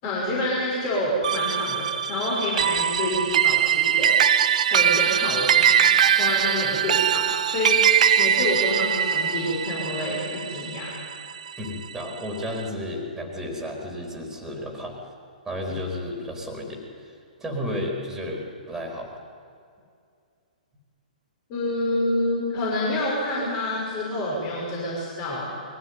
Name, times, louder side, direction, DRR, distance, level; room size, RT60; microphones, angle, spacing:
voice 1, 0.0-4.2 4.7-10.9 21.5-25.5, left 1 dB, 35° left, -5 dB, 6.4 m, -28 dB
sound 1, 1.2-11.8, right 8 dB, 55° right, 0.8 m, -22 dB
voice 2, 11.6-15.0 15.4-19.1, left 1 dB, 5° right, 1 dB, 4.0 m, -33 dB
22.0 x 15.5 x 9.7 m, 2.3 s
figure-of-eight pair, 120°, 5 cm